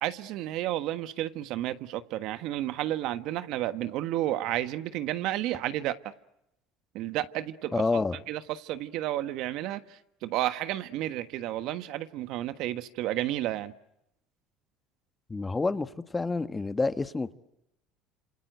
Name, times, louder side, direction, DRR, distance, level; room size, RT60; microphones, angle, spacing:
voice 1, 0.0-6.1 6.9-13.7, right 14 dB, 70° right, 1.4 m, -32 dB
voice 2, 7.7-8.2 15.3-17.3, left 3 dB, 20° left, 1.3 m, -28 dB
27.5 x 27.0 x 7.9 m
supercardioid pair, 90°, 0 cm